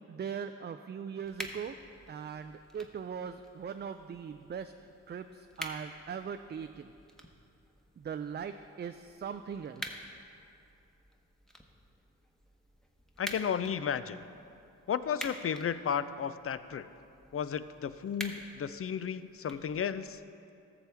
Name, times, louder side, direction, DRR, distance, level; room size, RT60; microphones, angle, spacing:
voice 1, 0.1-1.8 2.1-4.7 5.1-5.2 5.6-6.8 8.0-9.8, right 7 dB, 35° right, 8 dB, 0.4 m, -40 dB
sound 1, 1.2-20.2, equal, ahead, 1.1 m, -49 dB
voice 2, 13.2-14.2 14.9-16.9 17.3-20.2, left 7 dB, 45° left, 13 dB, 0.4 m, -33 dB
14.0 x 6.8 x 3.5 m, 2.6 s
supercardioid pair, 45°, 33 cm